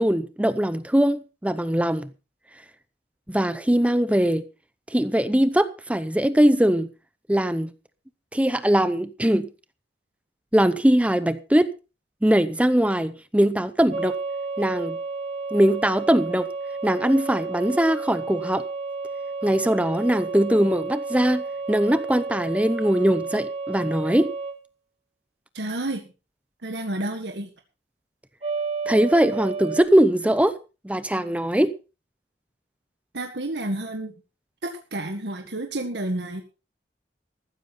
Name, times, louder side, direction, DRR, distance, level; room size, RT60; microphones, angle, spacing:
voice 1, 0.0-2.1 3.3-4.4 4.9-6.9 7.3-7.7 8.3-9.5 10.5-11.7 12.2-14.2 14.6-15.0 15.5-16.5 16.8-18.6 19.4-24.3 28.9-30.5 30.8-31.7, right 1 dB, 10° right, 0.7 m, -21 dB
sound 1, 13.9-24.6 28.4-29.8, right 4 dB, 40° right, 2.3 m, -31 dB
voice 2, 25.5-26.1 26.6-27.5 33.1-34.1 34.6-36.4, right 1 dB, 75° right, 1.8 m, -30 dB
14.5 x 13.0 x 4.2 m
head